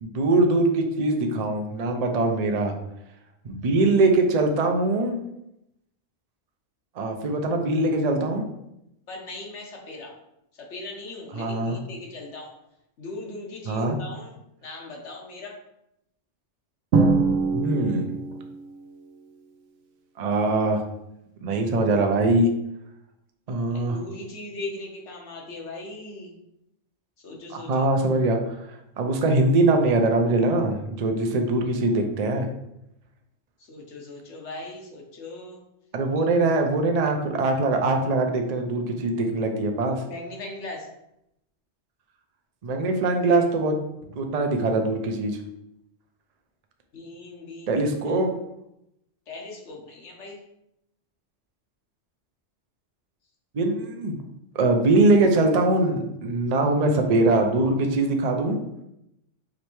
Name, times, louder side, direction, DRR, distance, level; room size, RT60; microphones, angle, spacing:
voice 1, 0.0-2.7 3.4-5.2 7.0-8.5 11.3-11.8 13.7-14.0 17.5-18.2 20.2-20.8 21.4-22.5 23.5-24.0 27.5-28.4 28.7-32.5 35.9-40.0 42.6-43.8 44.1-45.4 47.7-48.3 53.5-54.2 54.5-58.6, right 2 dB, 50° right, 4 dB, 0.5 m, -22 dB
voice 2, 9.1-10.1 10.6-12.5 13.0-15.6 23.7-26.3 27.2-27.9 33.7-35.6 36.2-36.3 40.0-40.9 46.9-48.2 49.3-50.4, left 2 dB, 75° left, 0 dB, 1.3 m, -39 dB
Drum, 16.9-18.6, right 4 dB, 90° right, 1.0 m, -22 dB
5.0 x 3.2 x 3.0 m, 0.83 s
omnidirectional pair, 1.2 m